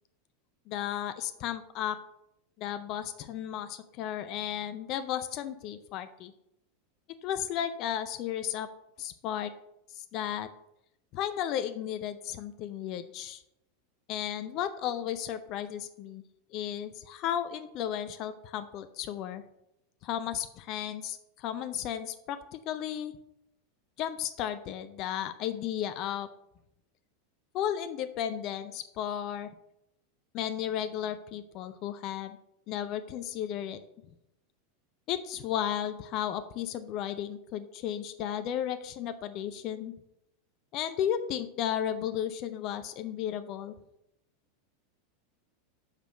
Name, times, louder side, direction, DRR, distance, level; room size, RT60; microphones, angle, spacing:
voice 1, 0.7-2.0 2.6-6.3 7.2-8.7 9.0-9.5 9.9-10.5 11.1-13.4 14.1-16.2 16.5-19.4 20.0-23.2 24.0-26.3 27.5-29.5 30.3-32.4 32.7-33.8 35.1-39.9 40.7-43.7, left 10 dB, 45° left, 11 dB, 0.5 m, -34 dB
6.6 x 5.0 x 6.2 m, 0.82 s
figure-of-eight pair, 90°, 0 cm